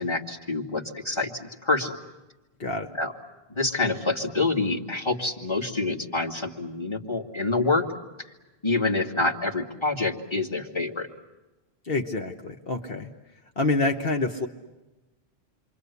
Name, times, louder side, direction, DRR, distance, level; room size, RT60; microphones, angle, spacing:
voice 1, 0.0-2.0 3.0-3.1 3.6-7.9 8.6-11.1, left 3 dB, 25° left, 2 dB, 2.2 m, -27 dB
voice 2, 2.6-2.9 11.8-13.1 13.6-14.5, left 3 dB, 65° left, 3 dB, 1.5 m, -27 dB
29.0 x 24.5 x 8.3 m, 1.1 s
omnidirectional pair, 1.1 m